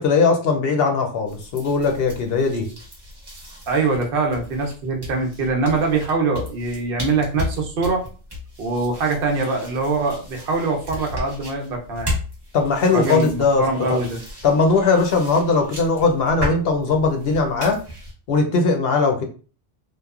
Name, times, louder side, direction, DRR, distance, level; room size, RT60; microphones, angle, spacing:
voice 1, 0.0-2.7 12.5-14.0 14.4-17.8 18.3-19.2, left 4 dB, 65° left, 4 dB, 0.8 m, -19 dB
sound 1, 1.3-18.1, left 1 dB, 25° right, 0.9 m, -35 dB
voice 2, 3.7-8.1 8.6-12.1 12.9-14.2, right 3 dB, 60° right, 2 dB, 0.8 m, -23 dB
3.0 x 2.0 x 2.3 m, 0.37 s
omnidirectional pair, 1.1 m